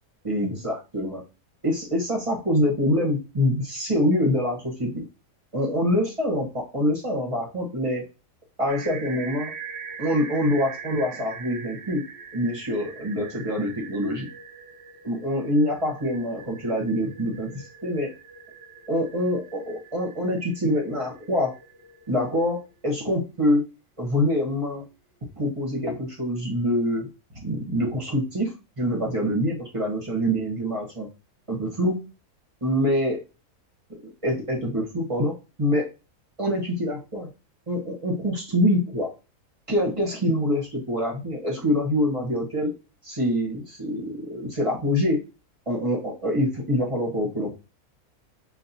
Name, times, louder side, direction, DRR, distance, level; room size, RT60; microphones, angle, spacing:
voice 1, 0.2-1.2 1.6-5.0 5.5-8.0 8.6-9.5 10.0-12.0 12.3-14.2 15.0-18.1 18.9-21.5 22.1-23.6 24.0-24.8 25.4-27.1 27.4-31.1 31.5-32.0 32.6-33.2 34.2-35.9 36.4-37.3 37.7-39.1 39.7-42.7 43.0-45.2 45.7-47.5, equal, 25° right, -1 dB, 1.0 m, -25 dB
sound 1, 8.7-22.5, right 6 dB, 45° right, 0.8 m, -42 dB
6.4 x 2.2 x 2.7 m, 0.30 s
omnidirectional pair, 1.7 m